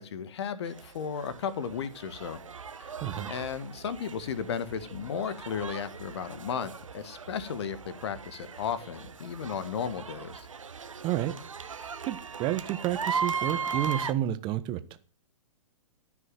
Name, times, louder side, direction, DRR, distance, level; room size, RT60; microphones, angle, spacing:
voice 1, 0.0-2.4 2.8-2.9 3.3-10.5, left 7 dB, 55° left, 1.5 m, -34 dB
sound 1, 0.7-14.1, right 5 dB, 70° right, 1.1 m, -38 dB
voice 2, 3.0-3.3 11.0-11.3 12.1-15.0, right 13 dB, 30° right, 1.2 m, -30 dB
14.5 x 6.3 x 9.2 m
figure-of-eight pair, 110°, 17 cm